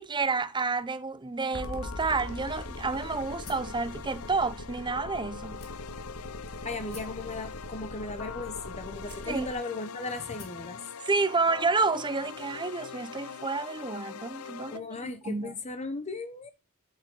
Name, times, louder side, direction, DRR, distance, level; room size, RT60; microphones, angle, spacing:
voice 1, 0.0-5.6 9.3-9.5 11.0-15.5, right 4 dB, 20° right, 0.7 m, -30 dB
sound 1, 1.5-9.5, left 1 dB, 75° left, 1.8 m, -42 dB
sound 2, 1.6-14.8, left 7 dB, 90° left, 0.6 m, -43 dB
sound 3, 3.4-3.8 4.6-4.7 5.6-6.1 6.9-7.2 8.2-8.3 9.1-9.6 10.4-10.7, left 4 dB, 45° left, 2.1 m, -49 dB
voice 2, 6.6-10.8 14.7-16.5, left 3 dB, 30° left, 1.0 m, -37 dB
7.4 x 7.1 x 3.7 m
head